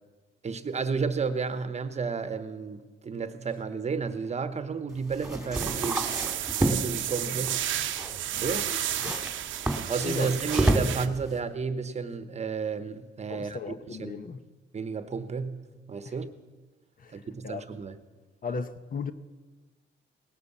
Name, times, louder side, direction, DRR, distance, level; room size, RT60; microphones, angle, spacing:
voice 1, 0.4-6.1 6.6-7.6 8.4-8.6 9.9-13.6 14.0-14.1 14.7-16.3 17.1-17.9, right 5 dB, 35° right, 1.0 m, -32 dB
sound 1, 4.9-11.4, right 1 dB, 5° right, 2.4 m, -31 dB
sound 2, 5.5-11.1, right 12 dB, 75° right, 0.8 m, -32 dB
voice 2, 8.3-9.2 9.6-9.7 10.0-10.3 13.3-14.4 16.0-16.2 17.0-17.7 18.4-19.1, left 5 dB, 45° left, 0.9 m, -37 dB
18.5 x 9.6 x 7.3 m
cardioid pair, 90°, 20 cm